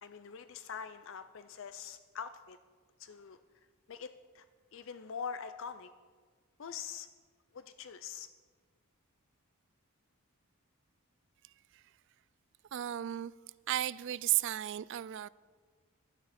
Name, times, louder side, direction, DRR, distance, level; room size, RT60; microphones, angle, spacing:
voice 1, 0.0-2.6 3.0-3.4 3.9-4.4 4.7-5.9 6.6-7.1 7.5-8.3, left 7 dB, 60° left, 0.4 m, -44 dB
voice 2, 12.7-13.3 13.7-15.3, right 13 dB, 55° right, 0.3 m, -34 dB
16.0 x 12.0 x 4.2 m
head